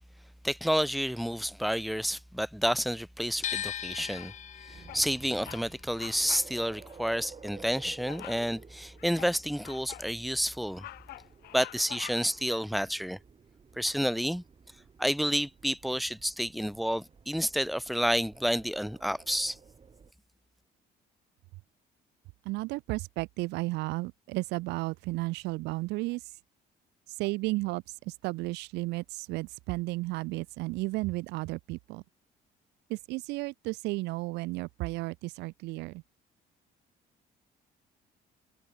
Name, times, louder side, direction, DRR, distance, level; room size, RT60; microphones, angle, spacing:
voice 1, 0.4-4.3 4.7-10.9 11.5-13.2 13.8-14.4 15.0-19.6, equal, ahead, 1.5 m, -30 dB
sound 1, 3.4-9.5 9.7-11.0, left 10 dB, 45° left, 0.8 m, -41 dB
Bird vocalization bird call bird song, 4.1-4.5 4.9-5.1 5.4-5.7 5.9-6.5 6.9-7.0 8.1-8.5 9.0-10.1 10.5-12.5, left 15 dB, 70° left, 1.2 m, -46 dB
sound 2, 4.7-20.1, right 5 dB, 30° right, 4.4 m, -54 dB
voice 2, 22.4-26.2 27.1-32.0 32.9-36.0, right 22 dB, 85° right, 0.6 m, -33 dB
cardioid pair, 110°, 17 cm